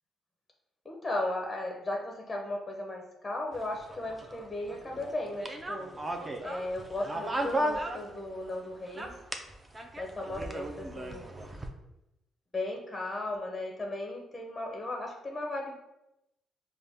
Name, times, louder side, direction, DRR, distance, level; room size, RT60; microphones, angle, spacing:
voice 1, 0.8-6.0 6.4-9.2 10.0-11.3 12.5-15.7, left 2 dB, 15° left, 1 dB, 0.7 m, -36 dB
sound 1, 3.5-8.6 8.9-11.7, right 1 dB, 20° right, 0.5 m, -36 dB
4.9 x 2.2 x 3.4 m, 0.90 s
cardioid pair, 90°, 0 cm